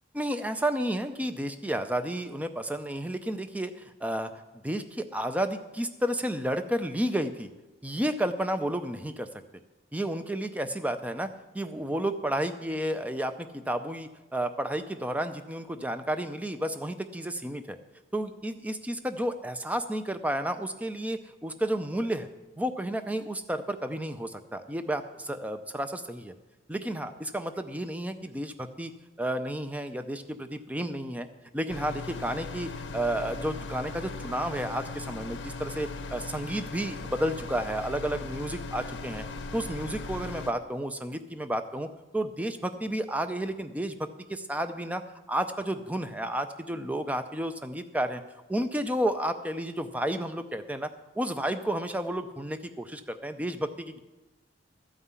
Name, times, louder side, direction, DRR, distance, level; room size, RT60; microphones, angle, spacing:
voice 1, 0.1-4.3 4.6-7.5 7.8-9.3 9.9-11.3 11.5-17.8 18.1-22.3 22.6-26.3 26.7-28.9 29.2-31.3 31.5-39.2 39.5-41.9 42.1-45.0 45.3-48.2 48.5-50.9 51.2-54.0, right 1 dB, 10° right, 9 dB, 0.5 m, -31 dB
sound 1, 31.7-40.5, left 3 dB, 65° left, 0.8 m, -38 dB
13.5 x 5.6 x 8.1 m, 1.1 s
head